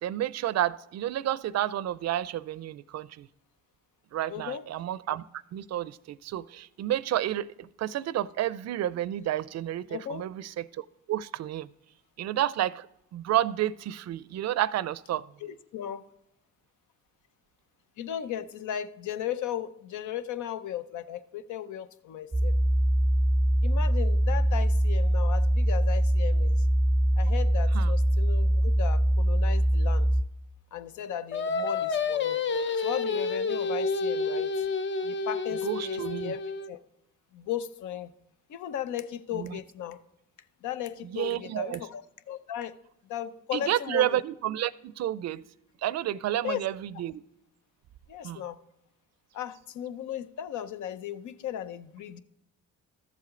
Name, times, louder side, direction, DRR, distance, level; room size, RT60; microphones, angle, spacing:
voice 1, 0.0-3.3 4.1-5.2 5.5-11.7 12.2-12.9 13.1-15.2 27.7-27.9 35.6-36.3 39.3-39.6 41.1-41.8 43.5-45.4 45.8-47.2 48.2-48.4, right 12 dB, 60° right, 19 dB, 0.5 m, -30 dB
voice 2, 4.3-4.6 9.9-10.2 15.4-16.0 18.0-22.5 23.6-26.7 27.2-30.1 30.7-32.4 32.7-34.5 35.0-36.4 36.7-36.8 37.3-38.1 38.5-40.0 40.6-42.7 43.1-44.2 46.4-46.6 48.1-48.6 49.3-52.2, left 10 dB, 75° left, 13 dB, 0.7 m, -36 dB
sound 1, 22.3-30.2, equal, 5° right, 0.4 m, -23 dB
Singing, 31.3-36.7, left 4 dB, 40° left, 0.6 m, -29 dB
13.0 x 7.5 x 3.7 m, 0.84 s
cardioid pair, 90°, 30 cm